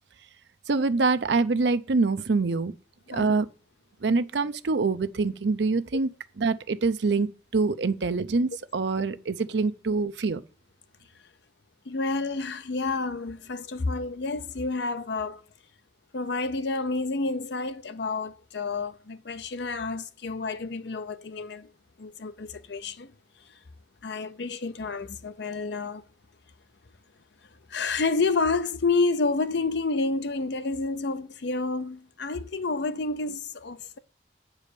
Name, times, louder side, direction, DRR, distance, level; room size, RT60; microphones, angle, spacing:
voice 1, 0.7-2.7 3.1-3.5 4.0-6.1 6.4-10.4, right 3 dB, 75° right, 0.6 m, -25 dB
voice 2, 11.9-15.4 16.1-21.7 22.0-23.1 24.0-26.0 27.7-34.0, left 3 dB, 70° left, 0.6 m, -29 dB
8.3 x 4.8 x 6.8 m
head